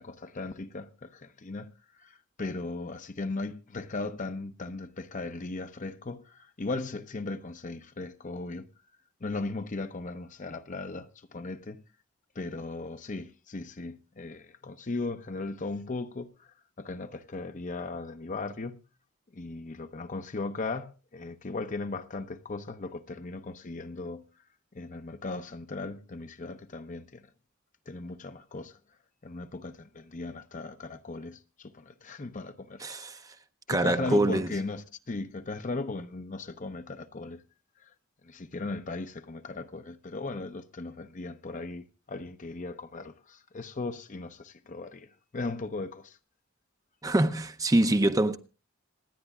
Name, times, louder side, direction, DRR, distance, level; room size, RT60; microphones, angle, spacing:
voice 1, 0.0-1.7 2.0-8.7 9.2-11.8 12.3-18.8 19.3-24.3 24.7-27.3 27.9-28.8 29.2-32.8 33.7-37.4 37.8-37.9 38.2-46.2, left 3 dB, 40° left, 0.7 m, -37 dB
voice 2, 32.8-33.3 33.7-34.5 47.0-48.4, right 1 dB, 15° right, 0.6 m, -25 dB
26.5 x 10.0 x 2.4 m
head